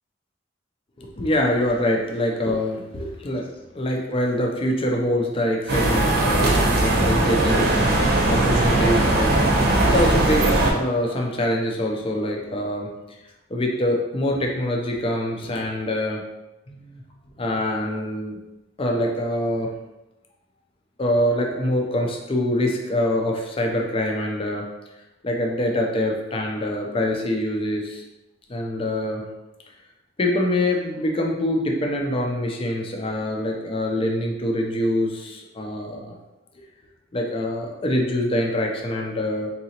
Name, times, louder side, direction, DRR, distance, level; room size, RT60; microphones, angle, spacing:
voice 1, 1.0-3.5 3.7-12.9 13.5-16.2 16.7-17.0 17.3-18.4 18.8-19.7 21.0-24.7 25.2-28.0 28.5-29.2 30.2-36.1 37.1-39.5, left 1 dB, 30° left, 0 dB, 0.5 m, -25 dB
sound 1, 5.7-10.7, right 2 dB, 55° right, 0.7 m, -19 dB
3.8 x 2.8 x 2.9 m, 0.99 s
head